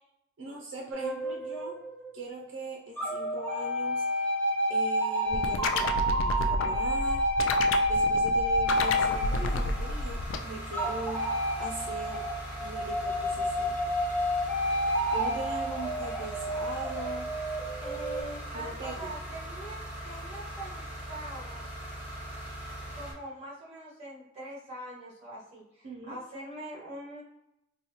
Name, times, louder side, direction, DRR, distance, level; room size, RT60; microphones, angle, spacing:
voice 1, 0.4-1.8 2.1-4.3 4.7-7.3 7.9-12.3 12.6-13.9 15.1-17.3 18.5-19.1 25.8-26.2, right 3 dB, 70° right, -1 dB, 0.5 m, -40 dB
sound 1, 0.9-2.5 3.0-10.1 10.7-18.2, equal, 10° left, 0.6 m, -29 dB
sound 2, 5.3-10.4, left 4 dB, 85° left, 0.3 m, -31 dB
sound 3, 8.7-23.1, equal, 10° right, 1.0 m, -40 dB
voice 2, 17.8-21.7 22.9-27.2, right 1 dB, 30° right, -6 dB, 1.4 m, -43 dB
4.0 x 2.2 x 2.9 m, 0.86 s
head